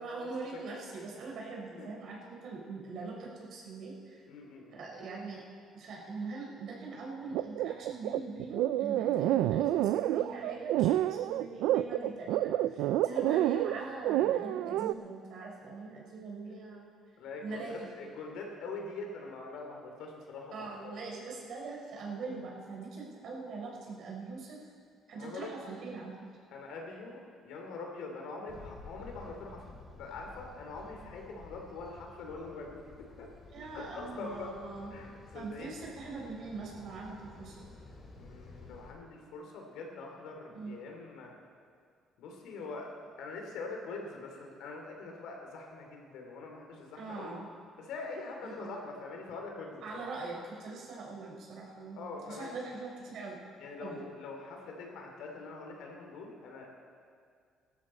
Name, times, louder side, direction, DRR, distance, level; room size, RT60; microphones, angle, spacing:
voice 1, 0.0-4.2 4.7-5.4 5.7-16.9 17.4-17.9 20.5-24.6 25.1-26.1 33.5-34.9 35.3-37.6 40.5-40.7 46.9-47.5 48.4-48.7 49.8-52.0 52.3-53.4 53.8-54.0, right 3 dB, 65° right, -2 dB, 4.3 m, -42 dB
voice 2, 4.3-4.8 13.1-13.4 17.2-20.7 25.1-25.5 26.5-27.2 27.4-29.6 30.0-32.9 33.2-33.3 33.7-34.5 34.9-35.9 38.2-41.3 42.2-42.9 43.2-47.4 47.8-50.1 52.0-52.5 53.6-56.7, left 3 dB, 80° left, 1 dB, 2.8 m, -43 dB
sound 1, 7.3-14.9, right 13 dB, 85° right, 0.3 m, -29 dB
sound 2, 28.5-38.9, left 3 dB, 35° left, 2.7 m, -52 dB
17.5 x 12.5 x 4.3 m, 2.2 s
cardioid pair, 105°, 0 cm